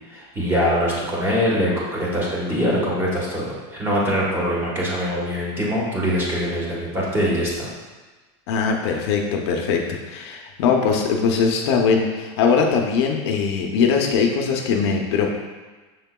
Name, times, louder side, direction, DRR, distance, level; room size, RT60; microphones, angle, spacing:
voice 1, 0.1-7.7, equal, 15° right, -5 dB, 1.2 m, -23 dB
voice 2, 8.5-15.4, left 5 dB, 70° left, 2 dB, 0.6 m, -21 dB
6.4 x 3.6 x 2.2 m, 1.3 s
supercardioid pair, 150°, 14 cm